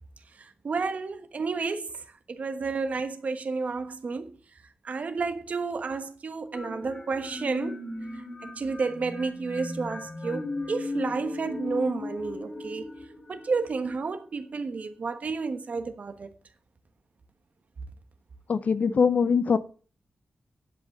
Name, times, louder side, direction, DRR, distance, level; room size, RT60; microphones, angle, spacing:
voice 1, 0.3-4.4 4.8-7.8 8.1-12.8 13.3-16.3, right 4 dB, 60° right, 1.3 m, -31 dB
sound 1, 6.5-14.3, left 2 dB, 30° left, 2.3 m, -37 dB
voice 2, 18.5-19.6, left 6 dB, 65° left, 0.7 m, -22 dB
11.0 x 5.2 x 6.6 m
wide cardioid pair, 85°, 3 cm